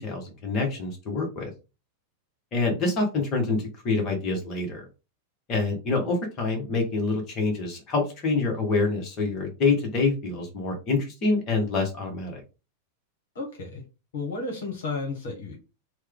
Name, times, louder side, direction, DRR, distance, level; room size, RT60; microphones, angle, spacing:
voice 1, 0.0-1.5 2.5-4.8 5.5-12.4, left 3 dB, 35° left, 1 dB, 1.2 m, -26 dB
voice 2, 13.3-13.8 14.1-15.6, left 3 dB, 60° left, 2 dB, 1.2 m, -32 dB
3.1 x 2.3 x 3.6 m, 0.29 s
figure-of-eight pair, 90°, 0 cm